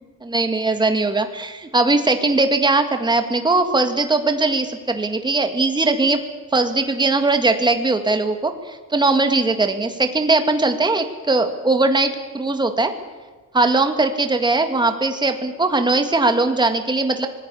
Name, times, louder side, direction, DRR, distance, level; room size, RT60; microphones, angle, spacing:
voice 1, 0.2-6.2 6.5-12.9 13.5-17.3, right 3 dB, 15° right, 7 dB, 1.9 m, -20 dB
25.5 x 20.0 x 7.0 m, 1.4 s
cardioid pair, 180°, 34 cm